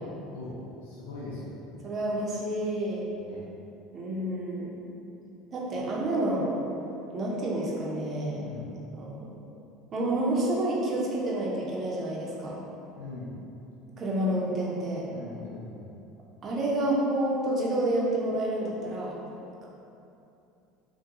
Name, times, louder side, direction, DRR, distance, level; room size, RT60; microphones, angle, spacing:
voice 1, 0.9-1.8 3.2-3.4 8.4-8.7 13.0-13.3 15.1-15.8, left 2 dB, 90° left, -6 dB, 0.5 m, -40 dB
voice 2, 1.8-3.0 3.9-4.7 5.5-6.5 7.1-8.5 8.9-9.4 9.9-12.6 14.0-15.0 16.4-19.2, right 1 dB, 40° right, -3 dB, 0.7 m, -29 dB
3.5 x 2.2 x 2.9 m, 2.8 s
supercardioid pair, 100°, 0 cm